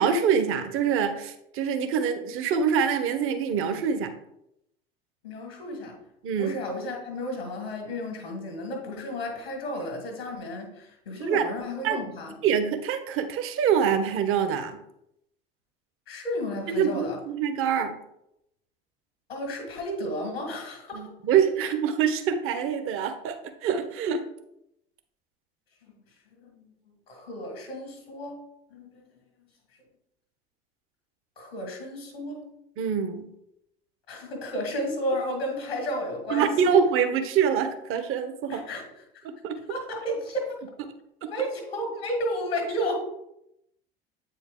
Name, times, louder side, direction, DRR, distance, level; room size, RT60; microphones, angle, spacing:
voice 1, 0.0-4.1 6.2-6.6 11.2-11.5 11.8-12.0 12.4-14.8 16.7-17.9 20.9-24.2 32.8-33.3 36.3-38.6 39.2-39.6, right 7 dB, 45° right, 8 dB, 0.9 m, -25 dB
voice 2, 5.2-6.0 6.4-12.3 16.1-17.2 19.3-21.0 26.4-26.7 27.1-28.4 28.7-29.0 31.4-32.4 34.1-36.8 38.5-38.8 39.7-40.6 41.2-42.9, equal, 90° left, 1 dB, 1.7 m, -32 dB
8.1 x 4.5 x 3.7 m, 0.81 s
figure-of-eight pair, 70°, 30 cm